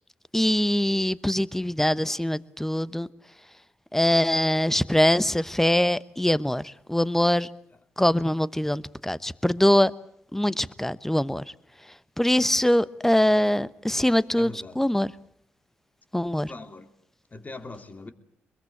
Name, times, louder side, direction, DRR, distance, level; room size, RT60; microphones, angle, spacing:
voice 1, 0.3-3.1 3.9-7.5 8.0-9.9 10.3-11.4 12.2-15.1 16.1-16.5, left 1 dB, 5° left, 1.0 m, -23 dB
voice 2, 14.4-14.8 16.4-16.9 17.3-18.1, left 3 dB, 35° left, 2.7 m, -41 dB
23.5 x 21.5 x 8.6 m
hypercardioid pair, 45°, 5 cm